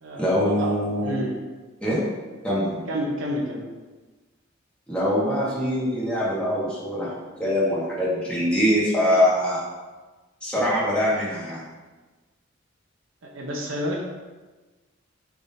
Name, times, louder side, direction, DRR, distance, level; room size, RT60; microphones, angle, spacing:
voice 1, 0.2-1.1 1.8-2.0 2.4-2.9 4.9-7.1 7.4-9.6 10.4-11.6, equal, 5° left, -8 dB, 1.7 m, -23 dB
voice 2, 1.0-1.4 2.9-3.7 13.2-14.0, equal, 75° right, -1 dB, 0.9 m, -29 dB
9.5 x 3.6 x 2.8 m, 1.3 s
head